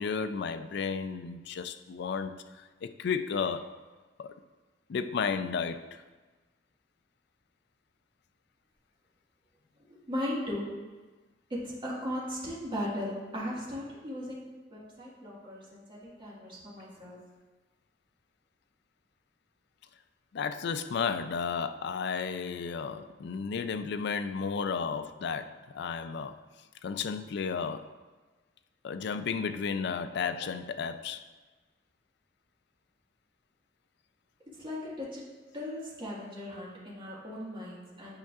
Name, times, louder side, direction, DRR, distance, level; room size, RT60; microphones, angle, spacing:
voice 1, 0.0-3.8 4.2-4.3 4.9-6.0 20.3-26.4 26.8-27.9 28.8-31.2, left 5 dB, 65° left, 0.4 m, -33 dB
voice 2, 9.9-10.8 11.6-17.2 34.5-35.2 35.5-38.2, left 1 dB, 30° right, 1.6 m, -37 dB
8.8 x 5.5 x 2.4 m
head